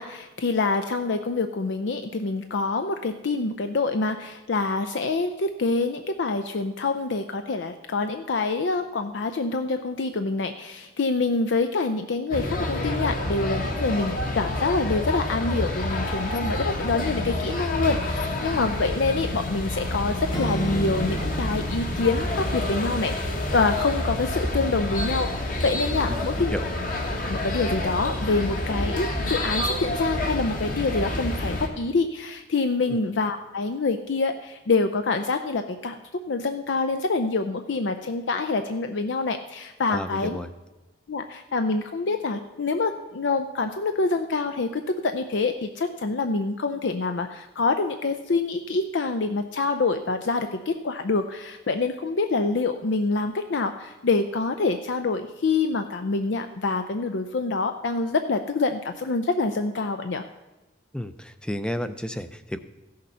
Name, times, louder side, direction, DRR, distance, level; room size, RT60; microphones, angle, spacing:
voice 1, 0.0-26.5 27.2-36.0 36.3-40.4 41.1-60.2, left 3 dB, 70° left, 8 dB, 0.5 m, -26 dB
sound 1, 12.3-31.7, left 1 dB, 45° left, 1.5 m, -28 dB
Acoustic guitar / Strum, 20.3-23.4, right 3 dB, 25° left, 1.0 m, -34 dB
voice 2, 26.1-26.6 32.9-33.0 39.9-40.5 60.9-62.6, equal, 5° left, 11 dB, 0.4 m, -32 dB
15.0 x 6.6 x 5.5 m, 1.1 s
head